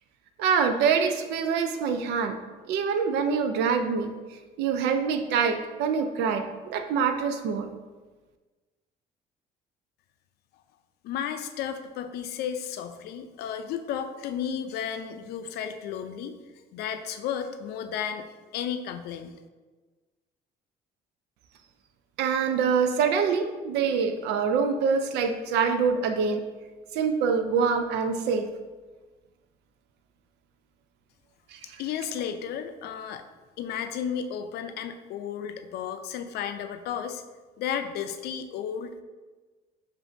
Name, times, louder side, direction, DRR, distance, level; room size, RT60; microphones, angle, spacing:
voice 1, 0.4-2.4 2.7-4.1 4.6-7.7 22.2-26.4 26.9-28.5 31.5-31.6, right 6 dB, 85° right, 8 dB, 0.5 m, -25 dB
voice 2, 11.0-16.4 16.7-18.3 18.5-19.4 31.8-33.2 33.6-37.2 37.6-39.0, left 8 dB, 70° left, 8 dB, 0.4 m, -33 dB
7.0 x 2.6 x 2.6 m, 1.3 s
cardioid pair, 110°, 17 cm